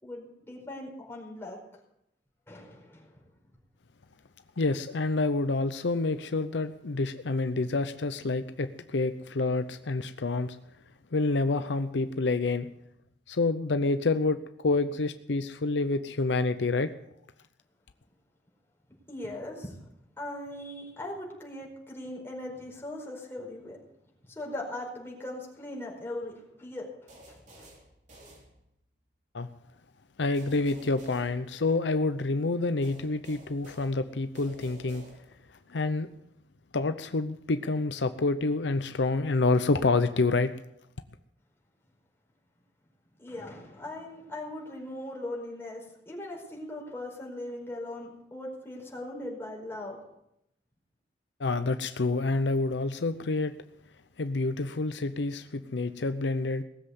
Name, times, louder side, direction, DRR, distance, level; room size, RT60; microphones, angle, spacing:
voice 1, 0.0-1.6 2.5-3.1 19.1-19.7 20.2-23.8 24.3-26.9 27.3-27.4 43.2-50.0, left 1 dB, 15° left, -2 dB, 4.8 m, -39 dB
voice 2, 4.6-10.6 11.1-12.7 13.3-16.9 29.3-29.5 30.2-35.0 35.7-36.1 36.7-40.5 51.4-53.5 54.2-56.6, left 3 dB, 75° left, 10 dB, 0.7 m, -28 dB
sound 1, 27.1-29.0 30.3-32.1 32.8-35.6, right 1 dB, 45° right, 3.8 m, -53 dB
18.5 x 7.8 x 8.2 m, 0.80 s
head